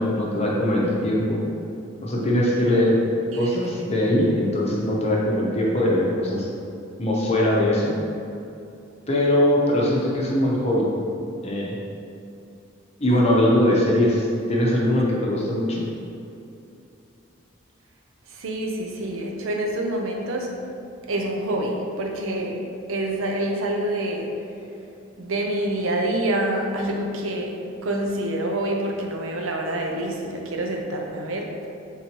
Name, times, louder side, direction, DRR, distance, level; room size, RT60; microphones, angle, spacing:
voice 1, 0.0-1.4 2.0-2.9 3.3-6.5 7.0-7.9 9.1-10.9 11.4-11.7 13.0-15.8, left 1 dB, 30° left, -4 dB, 0.7 m, -21 dB
voice 2, 13.1-13.5 18.3-20.5 21.1-24.3 25.2-27.5 27.8-31.7, right 1 dB, 85° right, 1 dB, 0.6 m, -27 dB
4.4 x 3.8 x 2.9 m, 2.7 s
head